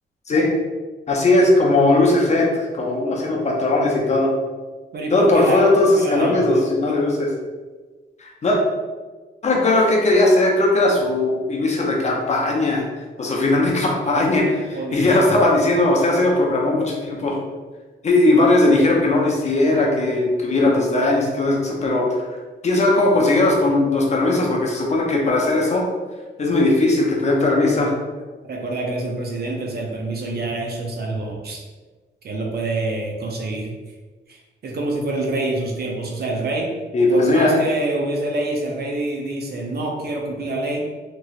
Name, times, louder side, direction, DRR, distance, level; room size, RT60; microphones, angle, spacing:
voice 1, 1.1-4.3 5.1-7.3 8.2-8.6 9.4-12.8 13.2-17.4 18.0-22.1 22.6-25.8 26.4-27.9 36.9-37.6, left 2 dB, 35° left, -1 dB, 0.5 m, -18 dB
voice 2, 4.9-6.5 14.7-15.1 28.5-31.6 32.2-33.7 34.3-36.7 37.1-40.9, right 2 dB, 55° right, 0 dB, 0.6 m, -26 dB
3.0 x 2.8 x 2.4 m, 1.3 s
wide cardioid pair, 160°, 19 cm